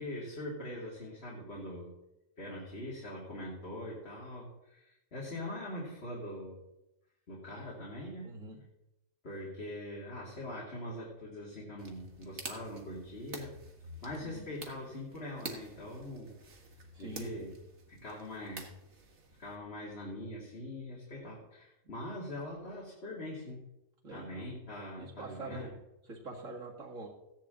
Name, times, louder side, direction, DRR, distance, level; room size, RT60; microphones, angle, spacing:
voice 1, 0.0-1.9 2.4-6.6 7.3-8.4 9.2-13.5 14.0-16.3 17.0-17.5 17.9-18.7 19.4-23.6 24.1-25.7, left 1 dB, 50° left, -4 dB, 2.8 m, -42 dB
voice 2, 8.2-8.6 14.2-14.5 16.9-17.5 24.0-24.5 25.0-25.7 26.0-27.1, right 3 dB, 75° right, -2 dB, 2.4 m, -45 dB
sound 1, 11.8-19.6, right 3 dB, 55° right, 1.8 m, -49 dB
15.5 x 10.0 x 3.8 m, 0.92 s
omnidirectional pair, 1.4 m